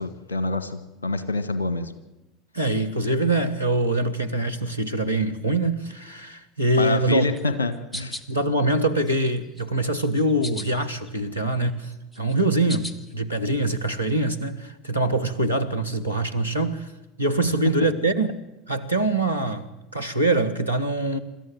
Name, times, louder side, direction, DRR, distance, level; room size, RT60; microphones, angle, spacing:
voice 1, 0.0-1.9 6.8-8.2, left 2 dB, 75° left, 12 dB, 1.5 m, -26 dB
voice 2, 2.5-7.2 8.3-16.9 17.2-18.4 18.7-19.7 19.9-21.2, right 2 dB, 90° right, 4 dB, 1.3 m, -24 dB
sound 1, 7.2-8.3 8.8-9.6 10.0-11.1 11.4-13.1, left 1 dB, 10° left, 1.4 m, -38 dB
25.5 x 13.5 x 7.9 m, 1.0 s
figure-of-eight pair, 75°, 0 cm